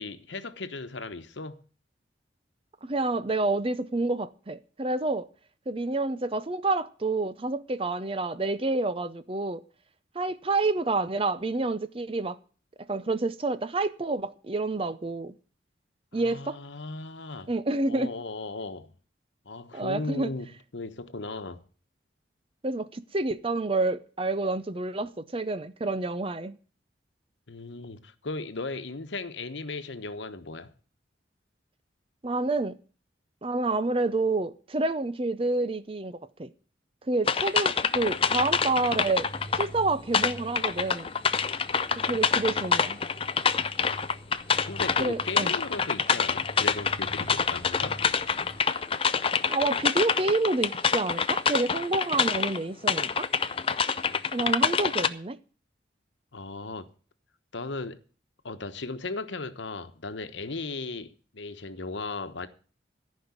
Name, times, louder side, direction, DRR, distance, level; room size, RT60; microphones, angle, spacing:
voice 1, 0.0-1.6 16.1-17.5 17.9-18.9 19.5-20.5 20.7-21.6 27.5-30.7 44.6-48.0 56.3-56.9 57.5-58.0 58.4-62.5, left 3 dB, 75° left, 1.1 m, -36 dB
voice 2, 2.8-5.3 5.7-9.6 10.1-12.4 12.9-15.3 16.1-16.6 17.5-18.1 19.7-20.3 22.6-26.6 32.2-32.8 33.4-36.5 37.1-39.3 39.5-41.1 42.1-43.0 45.0-45.5 49.5-53.3 54.3-55.4, right 2 dB, 30° right, 0.6 m, -28 dB
sound 1, 37.3-39.7 40.1-52.6 52.9-55.1, left 6 dB, 30° left, 0.5 m, -26 dB
sound 2, 38.0-48.6, right 1 dB, 70° right, 2.5 m, -46 dB
14.5 x 5.4 x 9.7 m
head